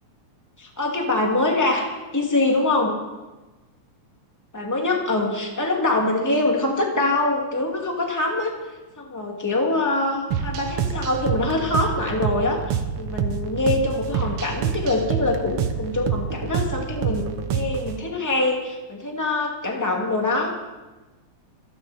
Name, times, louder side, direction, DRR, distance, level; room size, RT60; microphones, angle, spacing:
voice 1, 0.6-1.8 2.1-3.0 4.5-8.5 9.0-20.5, left 2 dB, 5° left, 0 dB, 2.1 m, -24 dB
sound 1, 10.3-18.0, right 7 dB, 65° right, 1.6 m, -27 dB
27.0 x 11.0 x 4.4 m, 1.1 s
omnidirectional pair, 3.5 m